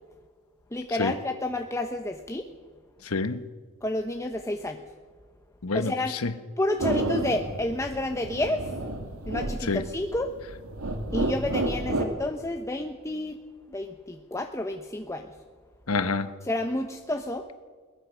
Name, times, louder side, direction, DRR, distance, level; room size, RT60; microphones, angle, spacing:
voice 1, 0.7-2.5 3.8-4.8 5.7-6.1 6.6-8.7 9.2-10.3 11.1-13.4 13.7-15.3 16.4-17.5, left 1 dB, 15° left, 0.9 m, -30 dB
voice 2, 3.1-3.4 5.6-5.9 6.2-6.3 9.7-9.8 15.9-16.3, left 3 dB, 75° left, 1.1 m, -26 dB
sound 1, 6.8-12.0, right 1 dB, 75° right, 2.4 m, -31 dB
22.0 x 19.5 x 6.3 m
head